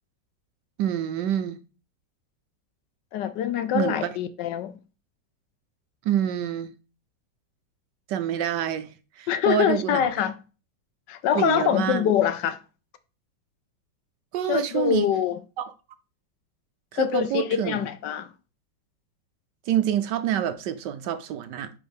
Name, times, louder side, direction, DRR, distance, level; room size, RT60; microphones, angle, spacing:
voice 1, 0.8-1.6 3.7-4.0 6.0-6.7 8.1-10.0 11.3-12.1 14.3-15.1 15.6-15.7 16.9-17.9 19.7-21.7, right 10 dB, 70° right, 1.1 m, -27 dB
voice 2, 3.1-4.7 9.3-10.3 11.1-12.6 14.5-15.4 17.0-18.3, left 10 dB, 75° left, 1.1 m, -24 dB
10.0 x 3.9 x 3.5 m
omnidirectional pair, 2.1 m